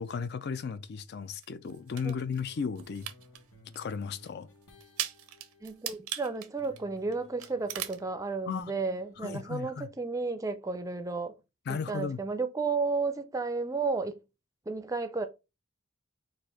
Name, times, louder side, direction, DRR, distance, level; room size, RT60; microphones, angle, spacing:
voice 1, 0.0-3.1 3.8-4.5 8.5-8.8 9.2-9.9 11.7-12.2, left 6 dB, 50° left, 0.4 m, -35 dB
sound 1, 1.4-2.4 2.8-3.4 3.7-3.8 4.2-4.3 4.8-7.1 7.4-8.0, right 11 dB, 85° right, 0.6 m, -38 dB
sound 2, 1.7-6.2 6.5-9.5, left 1 dB, 70° left, 1.3 m, -58 dB
voice 2, 5.6-11.3 11.7-14.2 14.7-15.3, right 4 dB, 15° right, 0.5 m, -32 dB
4.4 x 2.5 x 4.2 m
head